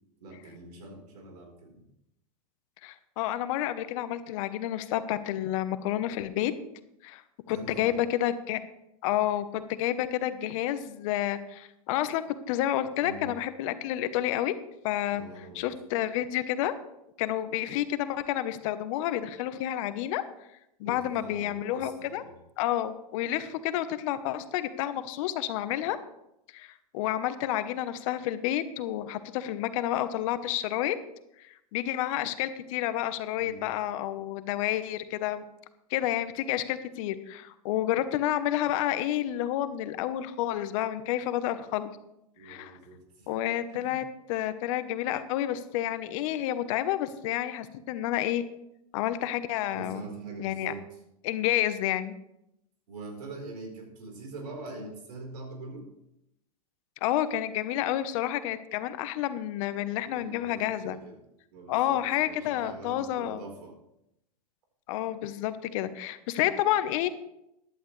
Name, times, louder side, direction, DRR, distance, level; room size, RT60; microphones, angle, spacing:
voice 1, 0.2-1.8 7.5-8.0 13.0-13.3 15.1-15.7 20.8-22.3 33.4-33.7 42.4-43.3 43.7-44.0 49.7-50.8 52.9-55.9 60.1-61.2 61.5-63.7, right 3 dB, 80° right, 2 dB, 4.2 m, -43 dB
voice 2, 2.8-6.5 7.0-7.2 7.5-8.6 9.0-14.5 14.8-16.7 17.2-20.2 20.8-22.2 22.6-26.0 26.5-31.0 31.4-35.5 35.9-41.9 42.4-42.8 43.3-48.4 48.9-50.0 50.4-50.7 51.2-52.1 57.0-61.0 61.7-63.4 64.9-67.1, left 13 dB, 55° left, 12 dB, 1.0 m, -30 dB
14.5 x 11.0 x 3.3 m, 0.82 s
hypercardioid pair, 110°, 20 cm